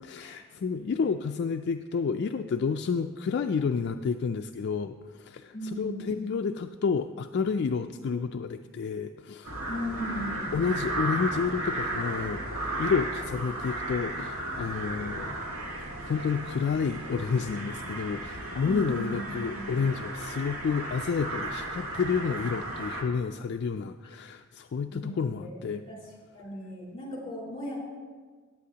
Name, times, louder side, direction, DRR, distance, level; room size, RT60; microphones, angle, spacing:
voice 1, 0.0-9.5 10.5-15.4 15.7-25.8, left 5 dB, 50° left, 7 dB, 0.3 m, -30 dB
voice 2, 5.5-6.2 9.7-10.5 18.6-19.8 24.8-26.0 26.3-27.8, equal, 25° left, -3 dB, 3.5 m, -37 dB
sound 1, 9.4-23.0, right 1 dB, 75° right, 1.8 m, -35 dB
18.0 x 8.4 x 2.8 m, 1.5 s
head